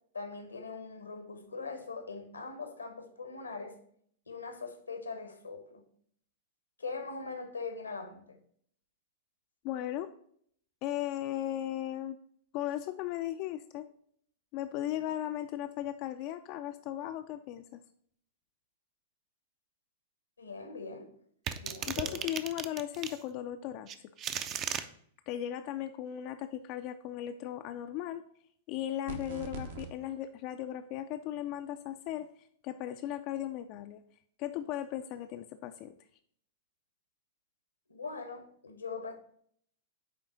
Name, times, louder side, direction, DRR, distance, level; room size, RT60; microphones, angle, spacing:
voice 1, 0.1-3.8 4.3-5.8 6.8-8.4 20.4-21.1 21.6-22.3 37.9-39.1, left 4 dB, 80° left, 1.0 m, -41 dB
voice 2, 9.6-10.1 10.8-12.2 12.5-13.9 14.5-17.6 21.9-23.9 25.3-28.2 28.7-34.0 34.4-35.9, left 12 dB, 40° left, 0.3 m, -37 dB
sound 1, 21.5-23.2 23.9-24.9, right 9 dB, 30° right, 0.5 m, -36 dB
sound 2, 29.1-29.9, right 4 dB, 60° right, 0.9 m, -41 dB
9.4 x 3.6 x 4.0 m
figure-of-eight pair, 100°, 0 cm